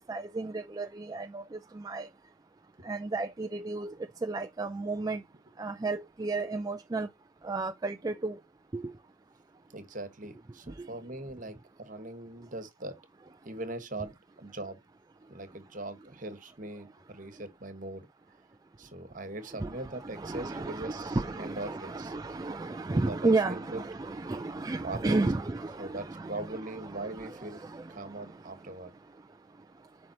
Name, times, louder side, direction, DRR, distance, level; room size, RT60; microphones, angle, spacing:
voice 1, 0.1-2.1 2.8-5.2 5.6-7.1 7.4-8.4 8.7-8.9 10.7-10.9 19.6-26.6 26.9-28.3, right 3 dB, 20° right, 0.3 m, -33 dB
voice 2, 9.7-13.0 13.4-14.8 15.3-18.1 18.8-22.1 22.9-23.8 24.8-25.2 25.8-27.6 27.9-28.9, right 2 dB, 40° right, 1.5 m, -41 dB
7.5 x 5.4 x 2.9 m
head